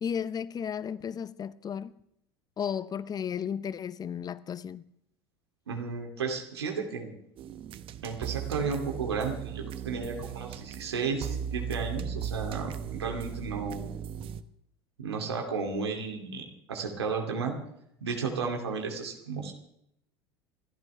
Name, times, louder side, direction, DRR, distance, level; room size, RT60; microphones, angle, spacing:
voice 1, 0.0-1.9 2.6-4.8, left 8 dB, 30° left, 0.9 m, -34 dB
voice 2, 5.7-7.1 8.0-13.9 15.0-17.5 18.0-19.5, right 5 dB, 80° right, 2.7 m, -33 dB
sound 1, 7.4-14.4, right 8 dB, 40° right, 1.1 m, -37 dB
28.0 x 14.0 x 3.4 m
figure-of-eight pair, 75°, 13 cm